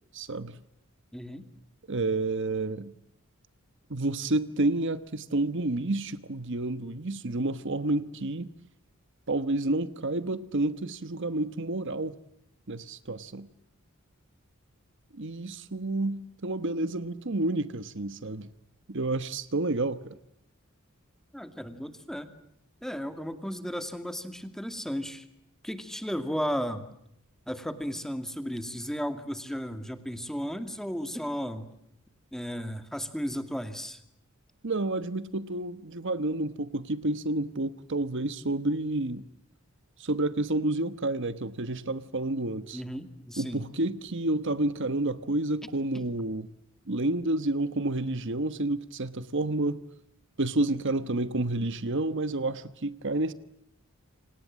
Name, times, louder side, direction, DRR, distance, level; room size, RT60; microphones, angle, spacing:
voice 1, 0.1-0.6 1.9-2.9 3.9-8.5 9.3-12.2 12.7-13.5 15.1-18.5 18.9-20.2 34.6-39.3 40.0-42.8 43.4-46.5 46.9-49.8 50.4-53.3, right 2 dB, 60° right, 13 dB, 1.2 m, -30 dB
voice 2, 1.1-1.5 21.3-22.3 22.8-25.3 25.6-26.9 27.5-31.7 32.3-34.0 42.7-43.6 45.9-46.1, equal, ahead, 9 dB, 2.2 m, -34 dB
29.0 x 26.5 x 7.6 m, 0.77 s
head